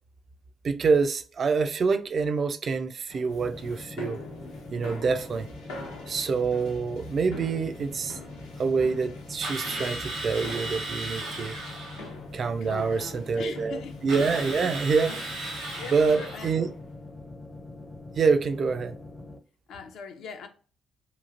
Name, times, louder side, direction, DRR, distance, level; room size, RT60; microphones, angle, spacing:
voice 1, 0.6-4.2 4.7-5.5 6.1-8.2 8.6-11.5 12.3-15.2 15.9-16.7 18.2-19.0, right 5 dB, 50° right, 0.4 m, -26 dB
sound 1, 3.1-17.0, left 3 dB, 85° left, 0.8 m, -45 dB
sound 2, 3.4-19.4, left 2 dB, 5° left, 0.5 m, -43 dB
Drill, 9.4-12.1 14.1-16.6, right 2 dB, 80° right, 1.2 m, -36 dB
voice 2, 12.6-14.0 14.5-14.8 15.8-16.5 19.7-20.5, left 6 dB, 65° left, 0.5 m, -40 dB
2.9 x 2.4 x 2.4 m
hypercardioid pair, 50°, 0 cm